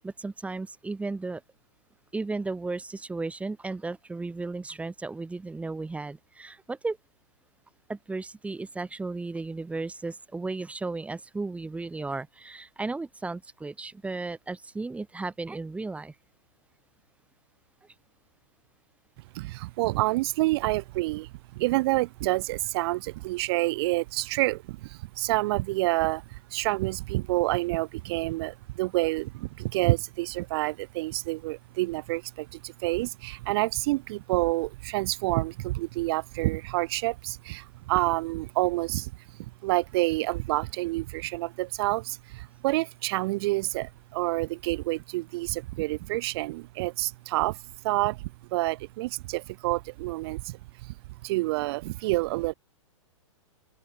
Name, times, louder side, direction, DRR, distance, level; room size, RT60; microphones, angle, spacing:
voice 1, 0.0-1.4 2.1-7.0 7.9-16.1, right 3 dB, 10° right, 5.2 m, -34 dB
voice 2, 19.3-39.1 39.4-50.9 51.2-52.5, right 20 dB, 50° right, 6.3 m, -28 dB
open air
hypercardioid pair, 120°, 17 cm